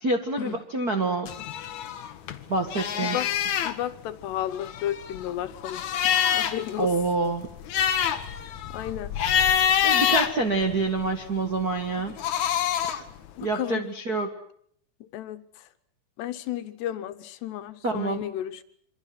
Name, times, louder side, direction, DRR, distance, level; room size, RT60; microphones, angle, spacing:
voice 1, 0.0-1.3 2.5-3.2 6.8-7.5 9.8-12.2 12.8-13.0 13.4-14.3 17.8-18.2, right 3 dB, 80° right, 3 dB, 0.8 m, -27 dB
sound 1, 1.3-2.4 2.7-3.7 4.5-6.7 7.1-7.2 7.5-11.1 12.0-13.1, left 9 dB, 60° left, 2.1 m, -26 dB
voice 2, 3.0-3.3 3.6-6.9 8.2-9.1 13.4-13.9 15.0-15.7 16.2-18.6, left 12 dB, 80° left, 11 dB, 3.3 m, -33 dB
27.5 x 25.0 x 6.0 m, 0.63 s
omnidirectional pair, 4.8 m